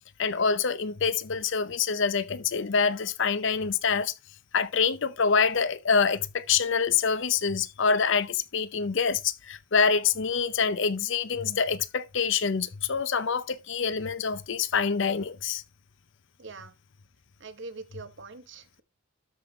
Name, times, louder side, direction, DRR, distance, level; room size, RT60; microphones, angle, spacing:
voice 1, 0.2-4.1 4.5-15.6, left 5 dB, 60° left, 0.6 m, -26 dB
voice 2, 16.4-16.7 17.4-18.8, right 3 dB, 55° right, 1.0 m, -43 dB
13.0 x 5.4 x 3.1 m
head